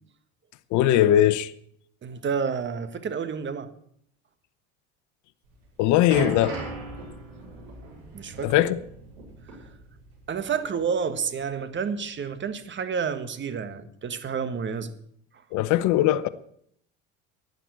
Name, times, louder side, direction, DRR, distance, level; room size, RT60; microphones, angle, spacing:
voice 1, 0.7-1.5 5.8-6.6 8.4-8.8 15.5-16.3, left 12 dB, 60° left, 0.9 m, -20 dB
voice 2, 2.0-3.7 8.1-8.5 10.3-14.9, right 6 dB, 35° right, 1.6 m, -29 dB
sound 1, 5.5-10.4 10.6-10.8 11.5-11.6, right 3 dB, 85° right, 6.5 m, -38 dB
12.0 x 9.2 x 8.4 m
supercardioid pair, 85°, 33 cm